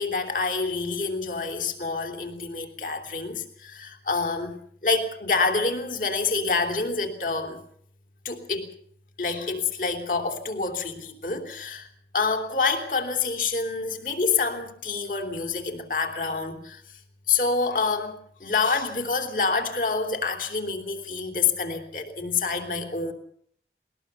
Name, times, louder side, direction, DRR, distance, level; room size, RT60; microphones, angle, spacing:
voice 1, 0.0-4.6 4.8-7.6 8.2-8.7 9.2-11.9 12.1-16.8 17.3-23.1, left 4 dB, 50° left, 7 dB, 3.2 m, -27 dB
20.5 x 20.5 x 6.8 m, 0.62 s
head